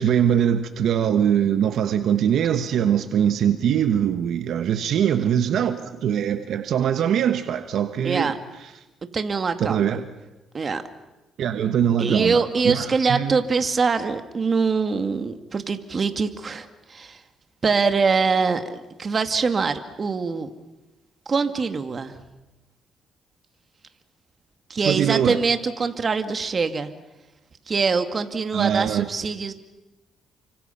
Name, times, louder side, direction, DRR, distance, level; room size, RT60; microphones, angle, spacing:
voice 1, 0.0-8.3 9.6-10.1 11.4-13.4 24.9-25.4 28.5-29.1, right 9 dB, 70° right, 9 dB, 1.3 m, -22 dB
voice 2, 8.0-8.4 9.1-10.0 10.5-10.8 12.0-17.2 17.6-20.5 21.3-22.2 24.7-26.9 27.7-29.5, right 5 dB, 40° right, 8 dB, 2.1 m, -23 dB
29.5 x 25.5 x 5.8 m, 1.0 s
cardioid pair, 90°, 0 cm